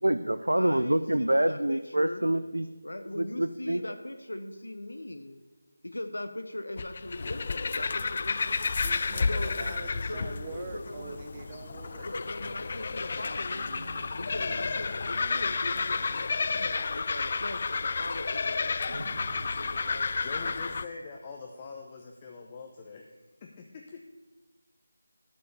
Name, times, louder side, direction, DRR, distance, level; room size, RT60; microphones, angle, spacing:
voice 1, 0.0-2.7 3.2-3.8, right 1 dB, 90° right, 11 dB, 0.5 m, -26 dB
voice 2, 0.6-2.3 2.8-5.4 5.8-8.7 9.2-11.2 12.0-13.7 14.1-20.7, left 1 dB, 80° left, 8 dB, 1.1 m, -40 dB
sound 1, 6.8-20.8, left 4 dB, 40° left, 0.3 m, -31 dB
voice 3, 8.8-12.1, right 4 dB, 25° right, 7 dB, 0.8 m, -43 dB
sound 2, 13.4-20.9, right 1 dB, 65° right, 3.1 m, -48 dB
voice 4, 20.2-24.0, left 4 dB, 25° left, 1 dB, 0.9 m, -43 dB
11.5 x 5.5 x 6.9 m, 1.1 s
figure-of-eight pair, 165°, 0 cm